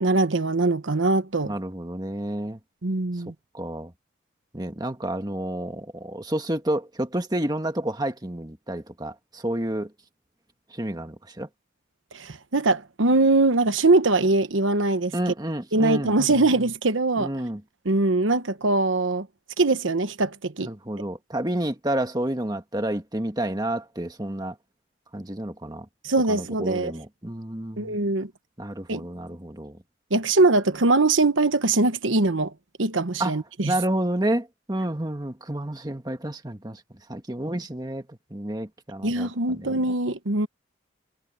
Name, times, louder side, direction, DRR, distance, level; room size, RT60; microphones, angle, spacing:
voice 1, 0.0-1.5 2.8-3.3 12.1-15.1 15.7-17.3 17.8-19.3 19.6-20.7 26.0-26.9 27.8-28.3 28.9-29.0 30.1-32.5 32.8-33.7 39.0-40.5, right 2 dB, 80° right, 1.1 m, -22 dB
voice 2, 1.4-2.6 3.5-3.9 4.5-9.9 10.7-11.5 15.1-16.5 17.2-17.6 20.6-24.6 25.1-25.9 26.3-28.0 28.6-29.8 33.2-33.4 33.7-36.8 37.1-39.8, right 1 dB, 20° right, 1.6 m, -30 dB
head